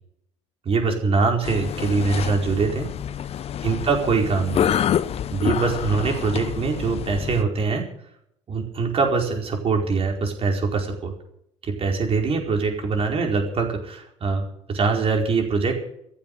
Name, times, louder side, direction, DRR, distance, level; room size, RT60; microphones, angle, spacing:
voice 1, 0.6-2.9 3.6-4.7 5.3-7.9 8.5-11.1 11.6-15.8, right 4 dB, 35° right, 2 dB, 4.8 m, -23 dB
sound 1, 1.4-7.4, left 10 dB, 40° left, 0.8 m, -27 dB
14.5 x 10.5 x 8.6 m, 0.73 s
figure-of-eight pair, 65°, 16 cm